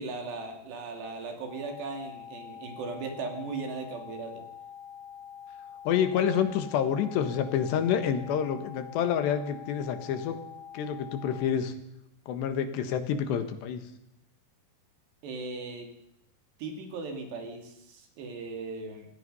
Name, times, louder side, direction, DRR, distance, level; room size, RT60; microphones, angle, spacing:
voice 1, 0.0-4.4 15.2-15.9 16.6-19.1, right 3 dB, 80° right, 4 dB, 4.8 m, -38 dB
sound 1, 1.5-11.5, left 8 dB, 35° left, 4.2 m, -46 dB
voice 2, 5.9-10.4 10.7-11.7 12.3-13.9, left 8 dB, 85° left, 9 dB, 3.8 m, -28 dB
26.5 x 17.5 x 5.6 m, 0.80 s
omnidirectional pair, 4.8 m